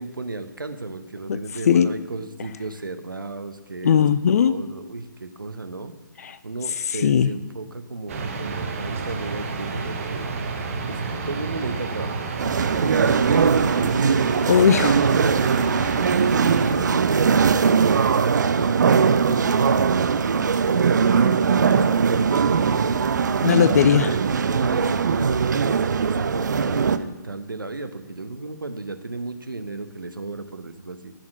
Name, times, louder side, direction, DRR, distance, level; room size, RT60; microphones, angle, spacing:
voice 1, 0.0-4.0 4.3-5.9 6.4-10.3 10.9-12.2 12.6-14.1 14.9-15.5 16.2-19.8 20.2-23.1 23.7-24.2 24.4-31.1, right 3 dB, 90° right, 9 dB, 0.7 m, -33 dB
voice 2, 3.8-4.6 6.2-6.4 7.0-7.4 14.5-15.0 23.4-24.1, left 8 dB, 50° left, 14 dB, 0.4 m, -18 dB
sound 1, 8.1-16.7, right 4 dB, 40° right, 1.0 m, -29 dB
sound 2, 12.4-27.0, right 6 dB, 60° right, 0.4 m, -20 dB
9.8 x 4.3 x 5.9 m, 1.1 s
figure-of-eight pair, 140°, 11 cm